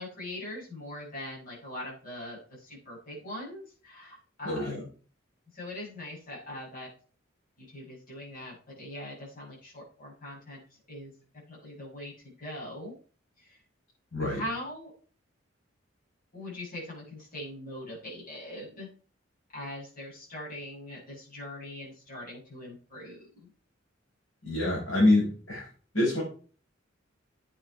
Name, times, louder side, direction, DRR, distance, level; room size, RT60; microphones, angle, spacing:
voice 1, 0.0-4.9 5.5-6.9 7.6-10.6 10.9-11.1 11.5-12.9 13.4-13.6 14.2-14.9 16.3-18.9 19.5-23.5, left 1 dB, 45° left, -4 dB, 7.1 m, -41 dB
voice 2, 4.4-4.8 14.1-14.4 24.4-25.6 25.9-26.2, left 2 dB, 80° left, -4 dB, 5.8 m, -25 dB
11.0 x 9.0 x 4.8 m, 0.39 s
head